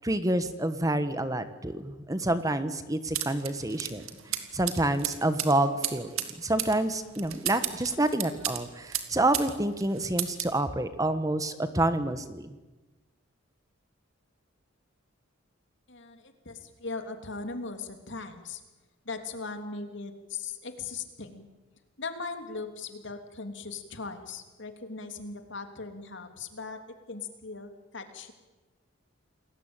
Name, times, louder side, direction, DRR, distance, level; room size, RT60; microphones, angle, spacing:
voice 1, 0.0-4.0 4.5-12.5, right 1 dB, 15° right, 11 dB, 1.2 m, -28 dB
sound 1, 3.1-9.5 9.8-10.6, right 11 dB, 90° right, 2.5 m, -34 dB
voice 2, 15.9-18.6 19.0-21.4 22.0-28.3, left 4 dB, 60° left, 6 dB, 3.2 m, -39 dB
29.0 x 20.5 x 9.0 m, 1.2 s
head